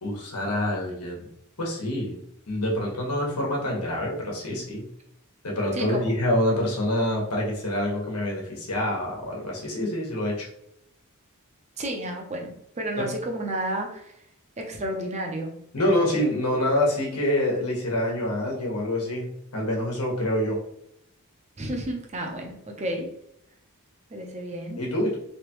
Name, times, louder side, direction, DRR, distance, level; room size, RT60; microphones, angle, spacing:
voice 1, 0.0-1.3 1.6-2.2 2.5-4.8 5.4-10.5 13.0-13.1 15.7-20.6 24.8-25.2, left 1 dB, 85° left, -2 dB, 1.4 m, -26 dB
voice 2, 11.8-14.1 14.6-15.5 21.6-23.1 24.1-24.8, right 1 dB, 30° right, 2 dB, 0.7 m, -31 dB
3.5 x 3.4 x 3.0 m, 0.74 s
head